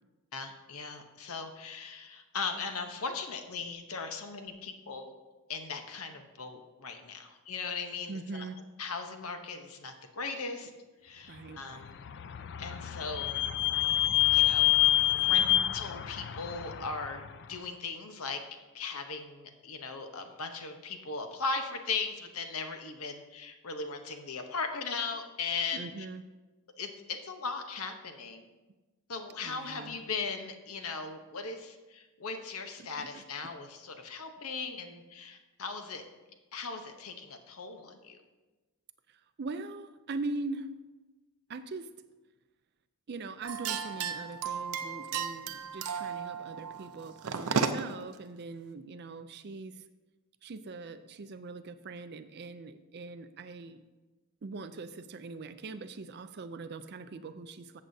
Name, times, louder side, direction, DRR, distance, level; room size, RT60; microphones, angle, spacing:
voice 1, 0.3-5.1 5.5-8.5 8.8-10.7 11.0-12.0 12.6-13.4 14.3-14.7 15.1-15.5 15.7-18.4 18.7-26.1 26.8-28.4 29.1-36.0 36.5-38.2, left 4 dB, 75° left, 6 dB, 0.9 m, -38 dB
voice 2, 8.1-8.6 11.3-11.6 15.3-15.7 25.7-26.2 29.4-30.0 32.8-33.2 39.1-40.7 41.5-41.9 43.1-49.8 50.4-53.8 54.4-57.8, right 3 dB, 50° right, 11 dB, 0.4 m, -41 dB
Vehicle / Squeak, 11.7-17.3, left 14 dB, 50° left, 0.4 m, -27 dB
sound 1, 43.4-48.0, right 6 dB, 90° right, 0.6 m, -34 dB
14.0 x 7.6 x 2.7 m, 1.2 s
head